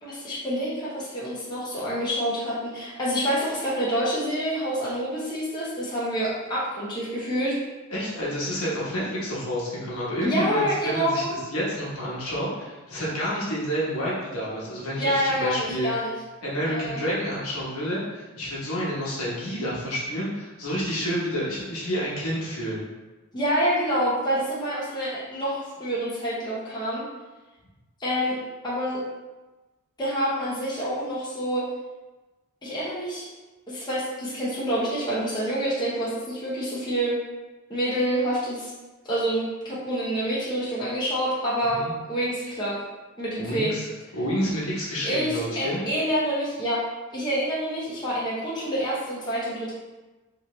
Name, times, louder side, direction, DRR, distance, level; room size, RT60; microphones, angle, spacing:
voice 1, 0.0-7.6 10.2-11.3 14.9-16.1 16.6-17.0 23.3-27.0 28.0-28.3 28.6-29.0 30.0-31.6 32.6-33.3 33.7-37.2 37.7-38.7 39.1-42.7 43.2-43.8 45.0-46.8 47.1-49.7, equal, 20° left, -8 dB, 0.7 m, -27 dB
voice 2, 7.9-15.9 16.4-22.9 41.7-41.9 43.4-43.9 44.1-45.8, equal, 80° left, -6 dB, 1.1 m, -29 dB
3.1 x 2.8 x 3.1 m, 1.1 s
head